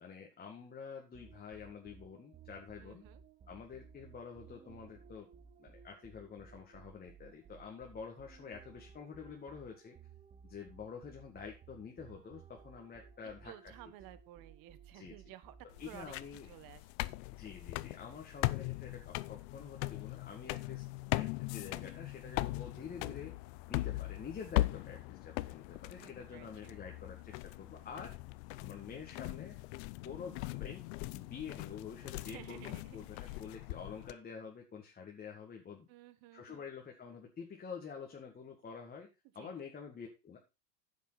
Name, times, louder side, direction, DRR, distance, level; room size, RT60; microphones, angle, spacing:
voice 1, 0.0-3.0 3.5-5.3 5.6-10.0 10.4-13.7 14.9-15.3 15.8-16.5 17.3-23.4 23.7-28.1 28.6-29.6 30.0-30.8 31.1-35.9 36.3-39.1 39.3-40.4, left 6 dB, 20° left, 1 dB, 1.9 m, -48 dB
sound 1, 1.1-16.3, right 6 dB, 15° right, 0.7 m, -58 dB
voice 2, 2.8-3.2 13.4-15.5 15.8-16.1 16.4-17.2 26.0-26.7 32.2-33.4 35.9-36.6 39.4-39.5, right 14 dB, 45° right, 14 dB, 1.4 m, -54 dB
sound 2, 15.7-34.1, left 19 dB, 45° left, 0.5 m, -40 dB
10.0 x 7.8 x 4.0 m, 0.28 s
supercardioid pair, 125°, 49 cm